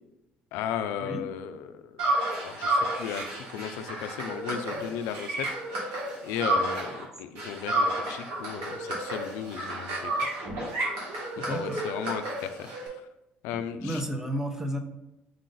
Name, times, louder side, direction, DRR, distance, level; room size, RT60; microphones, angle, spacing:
voice 1, 0.5-2.0 2.4-5.5 5.7-10.3 11.4-12.8 13.4-14.0, left 8 dB, 85° left, 9 dB, 0.3 m, -36 dB
sound 1, 2.0-7.0 7.3-12.9, right 1 dB, 85° right, 1.6 m, -31 dB
voice 2, 11.4-11.8 13.5-14.8, equal, 10° right, 5 dB, 0.7 m, -33 dB
5.0 x 2.5 x 3.8 m, 0.89 s
supercardioid pair, 85°, 4 cm